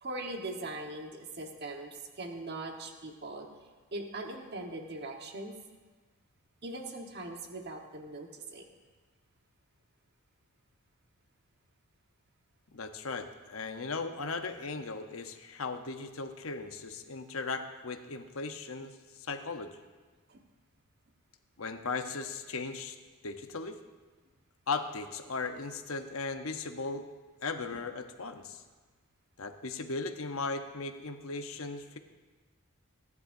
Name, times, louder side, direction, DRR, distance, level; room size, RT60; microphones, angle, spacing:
voice 1, 0.0-3.5 3.9-5.5 6.6-8.7 20.3-20.4, right 2 dB, 50° right, 3 dB, 1.3 m, -40 dB
voice 2, 12.7-19.8 21.6-23.0 23.2-23.8 24.7-27.0 27.4-28.6 29.4-32.0, left 4 dB, 70° left, 7 dB, 0.9 m, -37 dB
23.5 x 11.0 x 2.7 m, 1.3 s
head